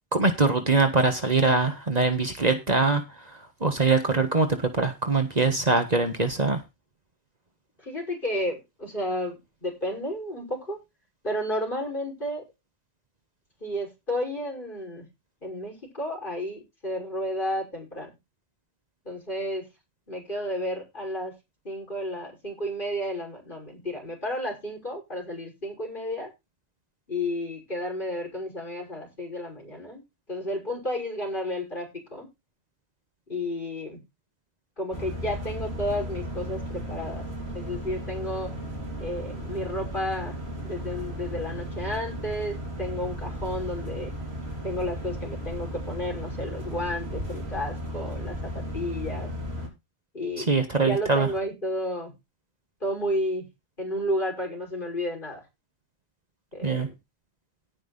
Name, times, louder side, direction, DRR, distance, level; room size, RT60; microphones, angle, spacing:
voice 1, 0.1-6.6 50.4-51.3 56.6-56.9, right 3 dB, 40° right, 6 dB, 1.7 m, -23 dB
voice 2, 7.8-10.8 11.2-12.4 13.6-15.1 15.4-18.1 19.0-19.7 20.1-21.3 21.6-26.3 27.1-30.0 30.3-32.3 33.3-34.0 34.8-37.3 37.5-38.5 39.0-44.1 44.6-49.3 50.1-50.5 50.8-52.1 52.8-53.5 53.8-55.4 56.5-56.9, left 1 dB, 50° left, 0 dB, 6.3 m, -32 dB
sound 1, 34.9-49.7, equal, 75° right, 4.2 m, -35 dB
17.5 x 5.9 x 4.2 m, 0.24 s
omnidirectional pair, 1.1 m